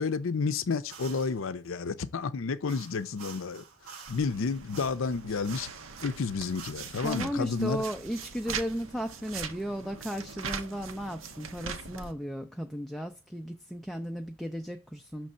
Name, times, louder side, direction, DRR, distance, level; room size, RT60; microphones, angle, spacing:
voice 1, 0.0-3.6 4.1-5.7 6.0-7.8, left 4 dB, 70° left, 0.5 m, -31 dB
sound 1, 0.9-1.4 2.7-6.7, right 6 dB, 90° right, 1.1 m, -49 dB
sound 2, 4.1-12.1, right 5 dB, 70° right, 0.8 m, -41 dB
voice 2, 7.0-15.3, equal, ahead, 0.3 m, -35 dB
6.3 x 3.3 x 5.5 m
head